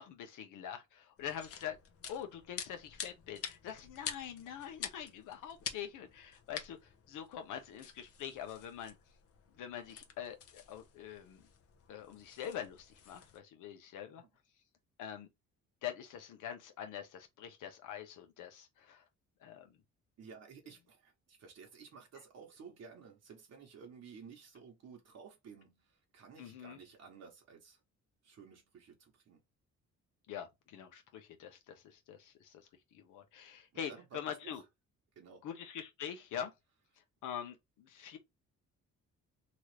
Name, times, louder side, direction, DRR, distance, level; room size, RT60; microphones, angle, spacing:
voice 1, 0.0-1.8 2.1-8.9 9.5-11.5 11.9-14.2 15.0-15.3 15.8-19.0 19.4-19.8 26.4-26.8 30.3-32.6 32.9-34.6 35.4-36.5 37.2-38.2, left 9 dB, 90° left, 0.9 m, -44 dB
sound 1, 1.2-13.4, left 7 dB, 50° left, 0.7 m, -48 dB
voice 2, 20.2-27.8 28.2-29.4 33.7-34.6 35.2-35.4, right 6 dB, 55° right, 1.0 m, -54 dB
3.0 x 2.5 x 3.1 m
cardioid pair, 90°, 30 cm